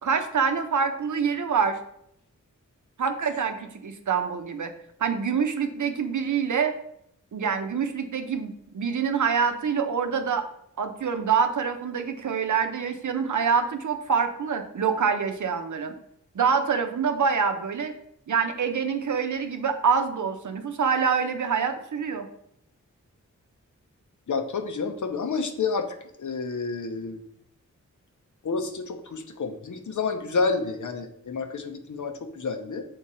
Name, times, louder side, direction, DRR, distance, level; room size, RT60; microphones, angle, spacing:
voice 1, 0.0-1.8 3.0-4.7 5.0-6.7 7.3-10.5 10.8-15.9 16.3-17.9 18.3-22.3, right 6 dB, 70° right, 6 dB, 0.7 m, -26 dB
voice 2, 24.3-27.2 28.4-32.9, left 4 dB, 70° left, 6 dB, 0.8 m, -29 dB
7.1 x 3.8 x 4.2 m, 0.73 s
wide cardioid pair, 120°, 31 cm